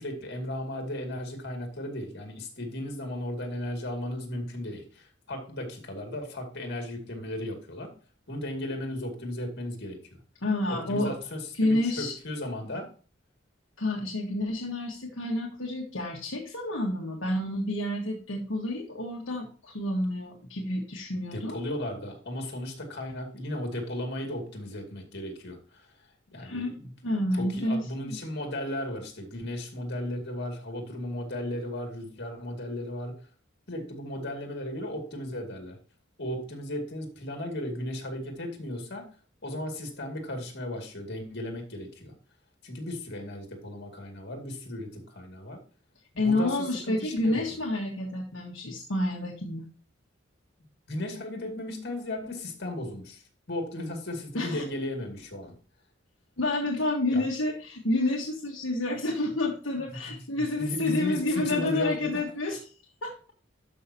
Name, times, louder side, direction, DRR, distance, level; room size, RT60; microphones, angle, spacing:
voice 1, 0.0-7.9 8.3-10.2 10.7-12.9 21.3-25.9 26.3-33.2 33.7-35.8 36.2-39.1 39.4-42.1 42.6-45.6 46.2-47.6 50.9-53.2 53.5-55.6 57.1-57.3 59.9-62.2, left 1 dB, 60° left, 3 dB, 2.4 m, -35 dB
voice 2, 10.4-11.1 11.5-12.1 13.8-21.6 26.4-26.7 27.0-28.2 46.2-49.7 54.3-54.6 56.4-62.6 63.0-63.1, left 2 dB, 75° left, -1 dB, 1.4 m, -29 dB
12.0 x 5.6 x 2.9 m, 0.39 s
head